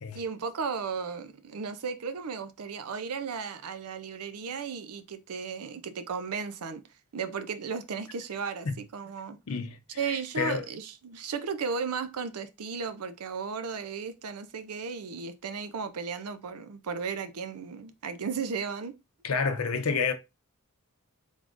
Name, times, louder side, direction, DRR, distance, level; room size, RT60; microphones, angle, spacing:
voice 1, 0.1-6.8 7.1-9.4 10.0-19.0, right 5 dB, 80° right, 0.5 m, -35 dB
voice 2, 9.5-10.7 19.2-20.1, left 5 dB, 75° left, 0.6 m, -30 dB
3.6 x 2.5 x 3.6 m
head